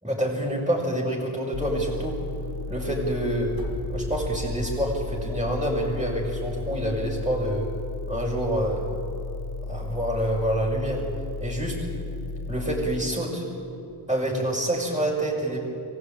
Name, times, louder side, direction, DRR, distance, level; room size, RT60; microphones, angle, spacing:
voice 1, 0.0-2.2 2.7-3.5 3.9-7.7 8.1-8.9 9.7-11.0 11.4-11.8 12.5-13.4 14.1-15.6, right 1 dB, 10° right, -8 dB, 5.9 m, -27 dB
sound 1, 1.5-13.0, left 3 dB, 90° left, 1.0 m, -34 dB
sound 2, 3.5-5.6, left 1 dB, 45° left, 4.3 m, -37 dB
24.5 x 16.0 x 9.2 m, 2.8 s
wide cardioid pair, 50°, 48 cm